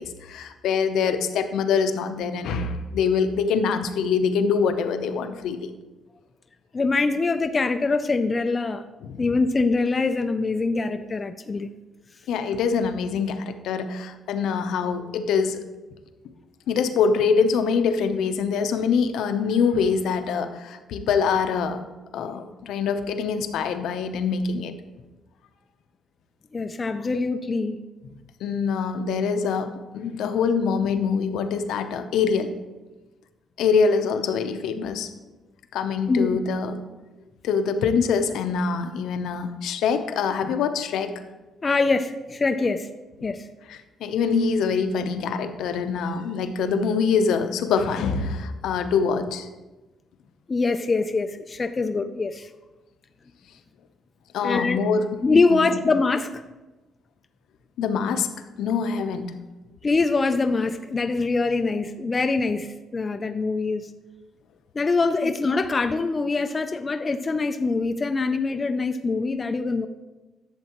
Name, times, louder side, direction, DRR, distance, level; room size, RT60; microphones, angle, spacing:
voice 1, 0.0-5.7 9.0-9.2 12.3-15.6 16.7-21.8 22.1-24.7 28.4-32.5 33.6-35.1 35.7-36.8 37.4-41.1 43.7-49.5 54.3-55.1 55.5-55.7 57.8-58.3 58.6-59.3, left 5 dB, 75° left, 8 dB, 0.7 m, -24 dB
voice 2, 6.7-8.8 9.2-11.7 22.2-22.3 26.5-27.8 36.1-36.4 41.6-42.9 43.2-43.4 50.5-52.5 54.4-54.8 55.2-56.4 59.8-63.9 64.7-69.9, left 3 dB, 20° left, 7 dB, 0.3 m, -24 dB
11.5 x 7.3 x 3.0 m, 1.1 s
cardioid pair, 160°, 0 cm